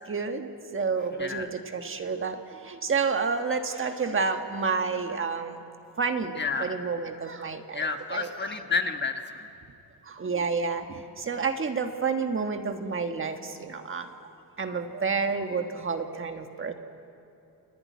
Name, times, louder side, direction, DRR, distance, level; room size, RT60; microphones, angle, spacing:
voice 1, 0.1-5.6 6.0-7.8 8.1-8.3 10.1-14.1 14.6-16.7, right 5 dB, 35° right, 5 dB, 1.5 m, -29 dB
voice 2, 1.1-1.5 6.3-7.3 7.7-9.5, left 4 dB, 30° left, 5 dB, 1.5 m, -31 dB
29.0 x 19.0 x 9.5 m, 2.7 s
cardioid pair, 145°, 38 cm